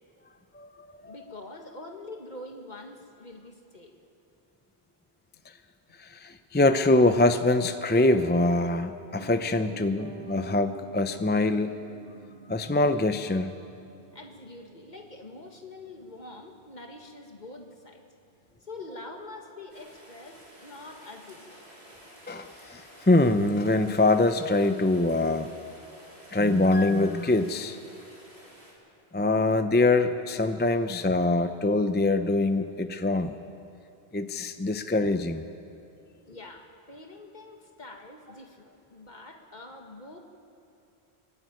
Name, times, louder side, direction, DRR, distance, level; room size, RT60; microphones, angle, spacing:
voice 1, 1.0-3.9 14.1-18.0 18.6-21.5 36.3-40.2, left 2 dB, 45° left, 3 dB, 1.9 m, -45 dB
voice 2, 6.0-11.8 12.5-13.5 22.3-25.5 26.3-27.8 29.1-33.3 34.1-35.4, left 2 dB, 15° left, 8 dB, 0.4 m, -24 dB
Piano, 9.2-19.2 19.5-19.6, right 4 dB, 65° right, 1.9 m, -48 dB
Rain, 19.7-28.7, equal, 40° right, 4.2 m, -52 dB
25.0 x 12.0 x 9.4 m, 2.7 s
omnidirectional pair, 1.1 m